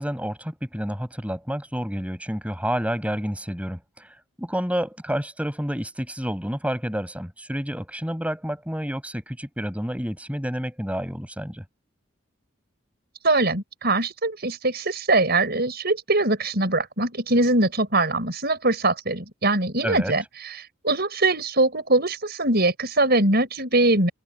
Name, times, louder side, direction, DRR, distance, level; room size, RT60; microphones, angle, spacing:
voice 1, 0.0-4.1 4.4-11.6 19.8-20.1, equal, 5° right, 7.1 m, -29 dB
voice 2, 13.2-20.2 20.8-24.1, right 2 dB, 50° right, 6.0 m, -22 dB
head